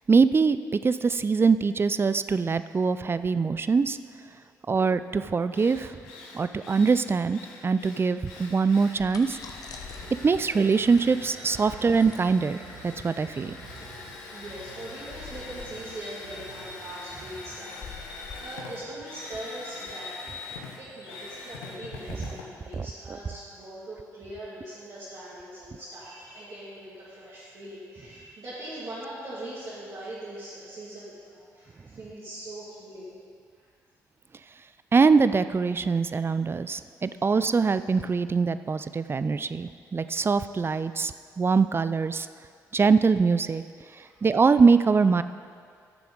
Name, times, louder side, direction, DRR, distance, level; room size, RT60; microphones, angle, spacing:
voice 1, 0.1-4.0 4.7-5.9 6.3-9.4 10.2-13.6 22.7-22.9 34.9-42.3 42.7-43.6 44.2-45.2, right 5 dB, 25° right, 13 dB, 0.4 m, -23 dB
Drill, 5.1-5.2 5.5-23.6, left 3 dB, 75° left, 1.0 m, -43 dB
sound 1, 8.9-20.1, left 6 dB, 45° left, 0.8 m, -47 dB
voice 2, 9.6-10.0 11.6-12.0 14.3-20.2 20.8-33.1 33.5-33.6 37.2-37.3 44.0-44.3, right 1 dB, 50° right, -11 dB, 2.6 m, -41 dB
sound 2, 9.7-16.9, right 3 dB, 80° right, 1.8 m, -50 dB
14.0 x 6.9 x 3.9 m, 2.2 s
figure-of-eight pair, 40°, 9 cm